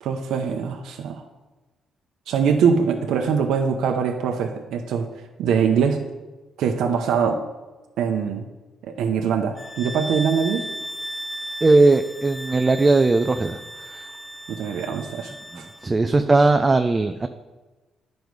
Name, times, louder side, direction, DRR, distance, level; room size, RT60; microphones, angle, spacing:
voice 1, 0.0-1.2 2.3-5.1 5.4-6.0 6.6-7.4 8.0-8.5 8.8-10.7 14.5-15.7, right 6 dB, 80° right, 3 dB, 0.7 m, -23 dB
sound 1, 9.5-16.0, equal, 15° left, 0.8 m, -36 dB
voice 2, 11.6-13.6 13.8-14.1 15.5-17.3, right 3 dB, 25° right, 8 dB, 0.4 m, -18 dB
10.0 x 5.3 x 4.7 m, 1.2 s
cardioid pair, 90°, 0 cm